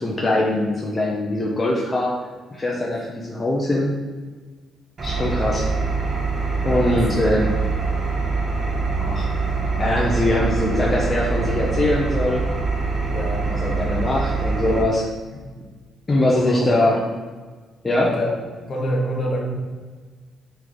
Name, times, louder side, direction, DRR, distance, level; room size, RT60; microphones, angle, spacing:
voice 1, 0.0-2.1 2.5-3.9 5.0-5.7 6.6-7.5 9.0-9.3 9.8-12.4 13.5-15.0 16.1-17.0 17.8-18.1, left 1 dB, 25° left, -4 dB, 0.5 m, -22 dB
Engine, 5.0-14.8, right 4 dB, 45° right, 0.7 m, -24 dB
voice 2, 6.4-7.0 13.1-13.5 15.3-15.5 16.3-16.9 18.0-18.3 18.7-19.6, equal, 45° left, -1 dB, 0.9 m, -26 dB
3.2 x 3.1 x 3.8 m, 1.4 s
cardioid pair, 90°, 0 cm